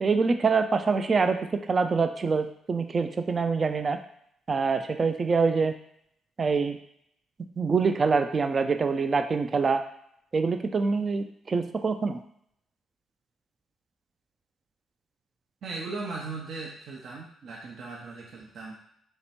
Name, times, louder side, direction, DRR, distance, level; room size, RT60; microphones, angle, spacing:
voice 1, 0.0-1.4 1.7-4.0 4.5-5.7 6.4-6.8 7.6-9.8 10.3-12.2, right 4 dB, 35° right, 8 dB, 0.3 m, -25 dB
voice 2, 15.6-18.7, right 3 dB, 60° right, -2 dB, 0.8 m, -38 dB
3.4 x 3.0 x 4.2 m, 0.72 s
cardioid pair, 90°, 0 cm